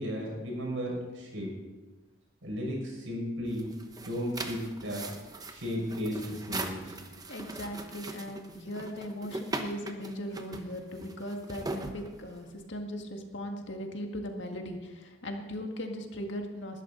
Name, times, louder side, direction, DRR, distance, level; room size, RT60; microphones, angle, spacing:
voice 1, 0.0-1.5 2.4-3.7 4.0-5.1 5.5-7.0, equal, 70° right, -2 dB, 5.8 m, -34 dB
sound 1, 3.5-12.6, right 2 dB, 20° right, 0.9 m, -40 dB
voice 2, 7.3-16.8, equal, 60° left, 3 dB, 1.9 m, -38 dB
20.0 x 12.0 x 4.0 m, 1.2 s
head